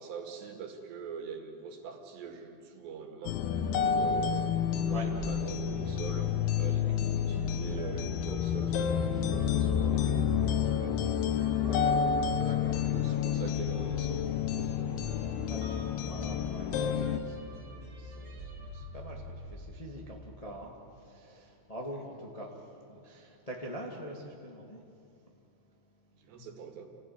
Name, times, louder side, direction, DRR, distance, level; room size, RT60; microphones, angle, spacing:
voice 1, 0.0-12.2 12.4-12.5 12.9-15.1 26.1-26.9, right 6 dB, 70° right, 3 dB, 4.2 m, -44 dB
sound 1, 3.3-17.2, left 8 dB, 70° left, 2.7 m, -29 dB
sound 2, 3.8-21.1, equal, 40° right, 2.8 m, -46 dB
sound 3, 7.8-10.9 11.4-14.0 15.1-16.1, right 2 dB, 15° right, 2.9 m, -47 dB
voice 2, 11.6-12.0 12.4-12.9 13.2-13.3 14.0-14.1 15.5-24.8, right 1 dB, 25° left, -1 dB, 0.8 m, -45 dB
28.5 x 17.0 x 9.6 m, 2.6 s
omnidirectional pair, 5.1 m